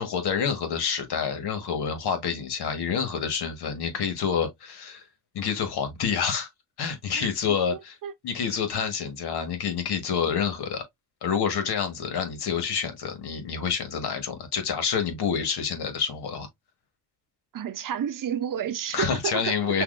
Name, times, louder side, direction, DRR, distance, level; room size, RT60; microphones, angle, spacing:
voice 1, 0.0-5.1 5.3-6.5 6.8-8.0 8.2-10.8 11.2-16.5 18.9-19.8, left 7 dB, 70° left, 1.5 m, -28 dB
voice 2, 7.1-8.1 17.5-19.8, right 9 dB, 55° right, 0.7 m, -31 dB
6.0 x 2.7 x 2.5 m
cardioid pair, 110°, 40 cm